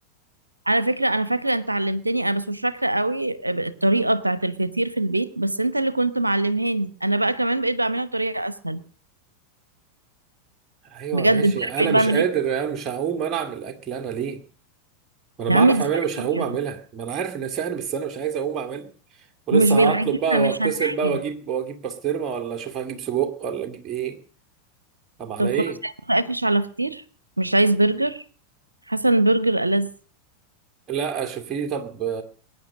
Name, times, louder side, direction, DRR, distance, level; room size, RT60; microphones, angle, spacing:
voice 1, 0.7-8.8 11.1-12.2 15.5-15.9 16.2-16.6 19.5-21.2 25.4-27.0 27.4-28.2 28.9-29.9, right 2 dB, 85° right, 0.9 m, -22 dB
voice 2, 10.8-14.4 15.4-18.9 19.5-24.2 25.2-25.8 30.9-32.2, right 8 dB, 30° right, 2.3 m, -27 dB
21.0 x 9.6 x 6.3 m
figure-of-eight pair, 90°, 0 cm